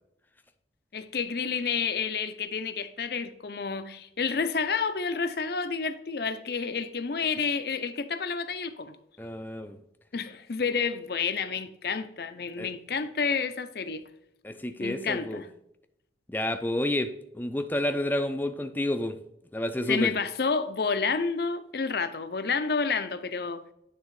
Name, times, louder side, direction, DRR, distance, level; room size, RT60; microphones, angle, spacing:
voice 1, 0.9-9.0 10.1-14.0 14.8-15.5 19.9-23.6, left 5 dB, 60° left, 0.5 m, -30 dB
voice 2, 9.2-9.8 12.6-12.7 14.4-15.4 16.3-19.2 19.5-20.1, left 1 dB, 10° left, 0.4 m, -30 dB
9.4 x 3.5 x 4.7 m
head